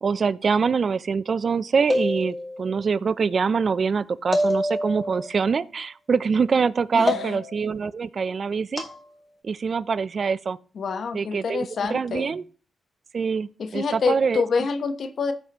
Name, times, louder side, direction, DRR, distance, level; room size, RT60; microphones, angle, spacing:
voice 1, 0.0-8.8 9.4-10.6 11.1-12.4 13.1-14.4, right 5 dB, 55° right, 0.5 m, -24 dB
sound 1, 1.9-2.7 4.3-5.3 7.1-7.7 8.8-9.0, left 1 dB, 40° left, 2.3 m, -26 dB
voice 2, 6.9-7.4 10.8-12.4 13.6-15.3, left 5 dB, 65° left, 1.0 m, -27 dB
14.5 x 5.5 x 3.0 m
supercardioid pair, 55°, 0 cm